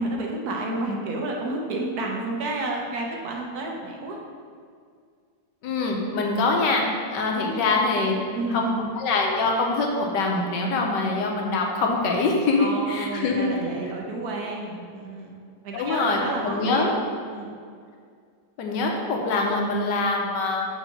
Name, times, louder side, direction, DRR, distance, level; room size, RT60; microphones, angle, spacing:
voice 1, 0.0-4.2 7.3-7.8 8.1-8.9 12.6-15.3 15.6-17.0 17.3-17.5, right 2 dB, 65° right, 0 dB, 1.2 m, -30 dB
voice 2, 5.6-6.8 7.1-8.1 8.5-8.6 8.9-13.5 15.7-16.9 18.6-20.7, left 3 dB, 80° left, 1 dB, 1.4 m, -24 dB
6.0 x 3.2 x 5.7 m, 2.1 s
omnidirectional pair, 1.9 m